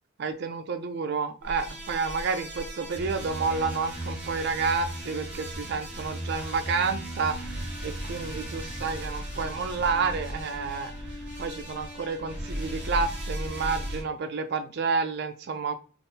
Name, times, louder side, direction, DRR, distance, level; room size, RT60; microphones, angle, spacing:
voice 1, 0.2-10.9 11.4-15.8, right 4 dB, 55° right, 6 dB, 0.5 m, -30 dB
sound 1, 1.4-14.0, right 1 dB, 5° right, 1.4 m, -36 dB
3.6 x 2.4 x 4.0 m, 0.34 s
head